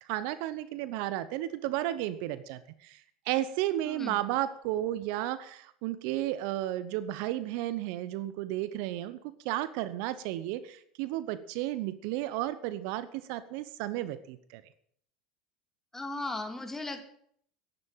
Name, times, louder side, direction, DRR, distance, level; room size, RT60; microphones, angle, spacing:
voice 1, 0.0-14.6, right 14 dB, 60° right, 14 dB, 0.9 m, -33 dB
voice 2, 3.8-4.2 15.9-17.1, left 2 dB, 10° left, 5 dB, 2.8 m, -37 dB
11.0 x 10.0 x 9.0 m, 0.65 s
hypercardioid pair, 85°, 3 cm